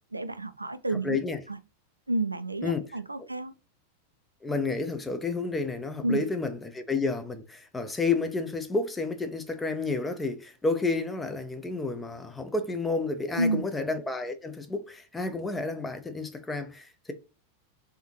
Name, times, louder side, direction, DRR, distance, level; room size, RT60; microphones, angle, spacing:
voice 1, 0.1-1.2 1.5-1.6 2.1-3.5 6.0-6.2 13.4-13.6, right 2 dB, 80° right, 0.3 m, -30 dB
voice 2, 1.0-1.4 2.6-2.8 4.4-17.1, left 3 dB, 10° left, 0.6 m, -30 dB
3.5 x 3.5 x 2.8 m
figure-of-eight pair, 90°, 0 cm